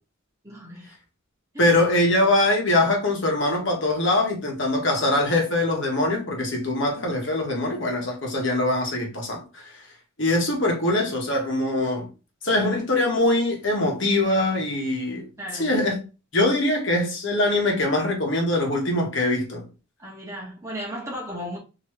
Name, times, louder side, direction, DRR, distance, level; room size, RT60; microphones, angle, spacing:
voice 1, 0.4-0.9 1.5-1.8 15.4-15.7 20.0-21.6, equal, 15° right, 1.3 m, -35 dB
voice 2, 1.6-9.7 10.2-12.1 12.4-15.3 15.6-16.0 16.3-19.6, left 1 dB, 55° left, 1.2 m, -23 dB
3.1 x 2.9 x 3.2 m
head